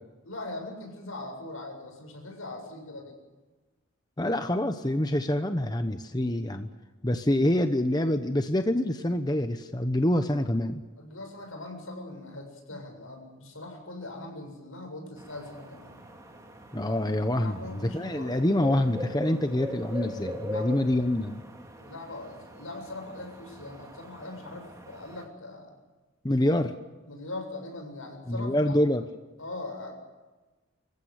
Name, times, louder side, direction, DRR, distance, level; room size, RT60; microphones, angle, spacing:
voice 1, 0.2-3.2 11.0-16.0 17.4-18.4 20.5-21.1 21.8-25.8 27.1-28.8 29.4-29.9, left 2 dB, 80° left, 3 dB, 7.5 m, -41 dB
voice 2, 4.2-6.7 7.0-10.8 16.7-21.4 26.2-26.7 28.3-29.1, left 1 dB, 20° left, 8 dB, 0.9 m, -26 dB
sound 1, 15.2-25.3, left 1 dB, 15° right, 2.5 m, -41 dB
26.5 x 15.0 x 9.6 m, 1.2 s
head